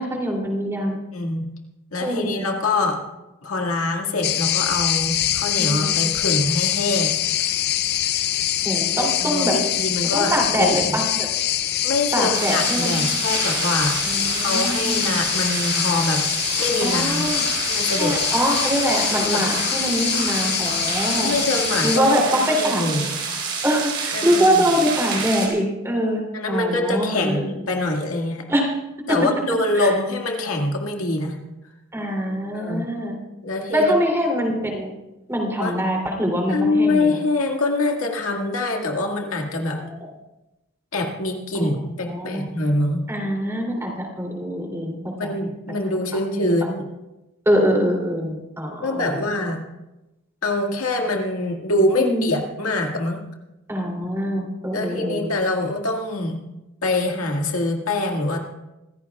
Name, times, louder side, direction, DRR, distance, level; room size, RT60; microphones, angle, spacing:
voice 1, 0.0-1.0 2.0-2.5 5.6-5.9 8.6-9.6 10.1-11.3 12.1-12.9 14.0-15.1 16.8-17.4 18.0-21.3 21.8-22.8 23.6-26.2 26.5-27.5 28.5-28.7 29.1-29.2 29.8-29.9 31.9-33.2 33.7-34.9 35.3-37.1 39.8-39.9 41.5-41.7 42.1-42.5 43.1-45.0 45.2-45.3 46.4-46.5 47.4-49.3 52.0-52.2 53.7-55.3, equal, 10° right, 1 dB, 2.8 m, -23 dB
voice 2, 1.1-1.5 1.9-3.0 3.4-7.2 9.2-11.0 11.8-14.0 14.4-16.2 16.6-17.2 17.6-18.2 19.2-19.5 21.2-23.2 24.1-24.8 26.3-28.5 29.1-31.4 32.5-32.9 33.4-33.9 35.6-35.8 36.5-39.8 40.9-43.0 45.2-46.9 48.8-49.6 50.4-53.3 54.7-56.4 56.8-58.4, left 2 dB, 75° left, 2 dB, 1.9 m, -24 dB
sound 1, 4.2-22.0, left 12 dB, 45° left, 0.5 m, -24 dB
sound 2, 12.3-25.5, right 5 dB, 50° right, 3.8 m, -28 dB
26.0 x 15.0 x 2.3 m, 0.98 s
head